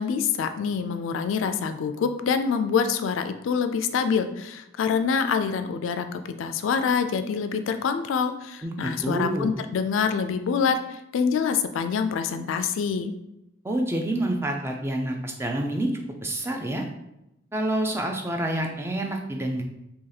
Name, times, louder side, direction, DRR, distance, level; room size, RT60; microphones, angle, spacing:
voice 1, 0.0-13.1, left 6 dB, 75° left, 9 dB, 0.3 m, -26 dB
voice 2, 8.6-9.5 13.6-16.9 17.5-19.6, right 1 dB, 10° right, 2 dB, 0.3 m, -28 dB
2.8 x 2.7 x 3.9 m, 0.87 s
head